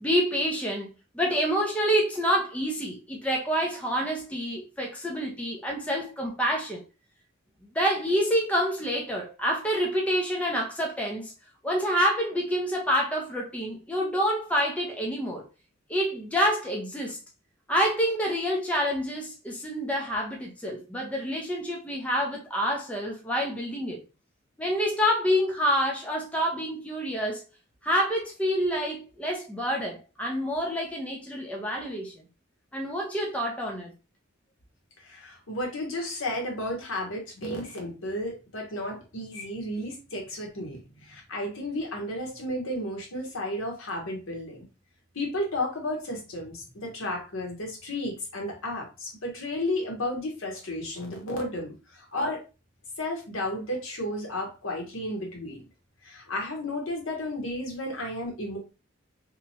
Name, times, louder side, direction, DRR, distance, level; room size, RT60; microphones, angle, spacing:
voice 1, 0.0-0.9 1.1-6.8 7.7-11.3 11.6-15.4 15.9-17.2 17.7-24.0 24.6-27.4 27.8-32.1 32.7-33.9, equal, 5° left, 0.5 m, -27 dB
voice 2, 35.0-44.7 45.1-52.4 53.0-55.6 56.0-58.6, left 1 dB, 75° left, 1.0 m, -33 dB
2.9 x 2.2 x 2.7 m
head